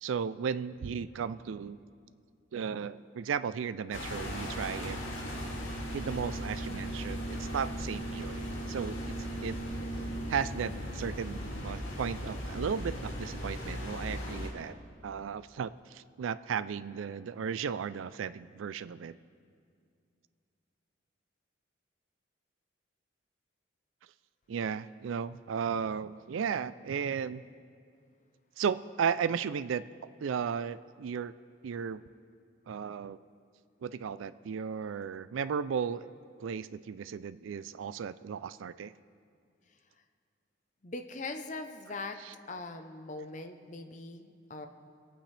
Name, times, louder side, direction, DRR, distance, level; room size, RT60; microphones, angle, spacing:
voice 1, 0.0-1.8 2.5-5.0 5.9-9.1 9.4-9.6 10.3-14.7 15.0-19.2 24.5-27.4 28.6-29.8 30.2-31.3 31.6-32.0 32.7-33.2 33.8-36.1 36.4-38.9 42.2-42.3, right 7 dB, 90° right, 15 dB, 0.4 m, -35 dB
sound 1, 3.9-14.5, equal, 90° left, 2.4 m, -37 dB
voice 2, 40.8-42.2 42.5-44.7, left 3 dB, 40° left, 6 dB, 0.7 m, -41 dB
26.0 x 8.8 x 3.3 m, 2.3 s
head